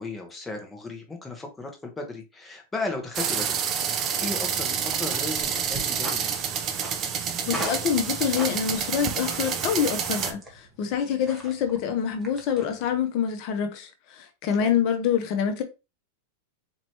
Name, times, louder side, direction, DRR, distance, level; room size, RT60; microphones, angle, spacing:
voice 1, 0.0-6.4 11.0-11.3 14.5-14.7, left 3 dB, 10° left, 1.1 m, -36 dB
sound 1, 3.1-10.3, right 7 dB, 35° right, 0.6 m, -28 dB
sound 2, 4.6-13.0, right 1 dB, 10° right, 1.3 m, -41 dB
voice 2, 7.5-15.6, left 8 dB, 50° left, 0.9 m, -26 dB
4.5 x 3.0 x 2.9 m
hypercardioid pair, 130°, 0 cm